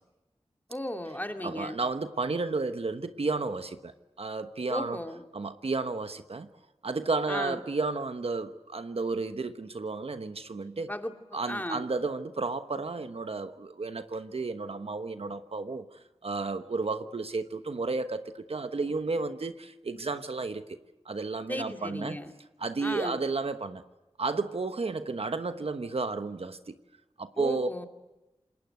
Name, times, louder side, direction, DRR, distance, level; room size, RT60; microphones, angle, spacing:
voice 1, 0.7-1.8 4.7-5.2 7.3-7.6 10.9-11.1 11.5-11.9 21.5-22.3 22.8-23.2 27.4-27.9, left 1 dB, 15° left, 2.5 m, -35 dB
voice 2, 1.4-5.0 5.3-6.5 6.8-10.9 11.3-15.9 16.2-20.8 21.0-22.2 22.6-23.8 24.2-26.7 27.2-27.7, right 3 dB, 65° right, 1.2 m, -32 dB
27.5 x 20.5 x 8.1 m
wide cardioid pair, 50°, 11 cm